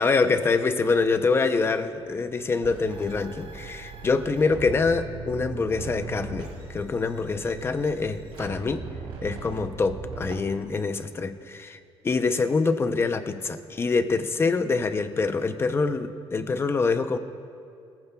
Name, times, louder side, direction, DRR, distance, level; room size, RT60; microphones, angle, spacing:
voice 1, 0.0-8.9 9.2-11.8 12.0-17.2, left 4 dB, 25° left, 9 dB, 0.6 m, -25 dB
sound 1, 2.6-10.3, right 4 dB, 65° right, 2.8 m, -39 dB
23.5 x 14.5 x 2.3 m, 2.5 s
cardioid pair, 160°, 11 cm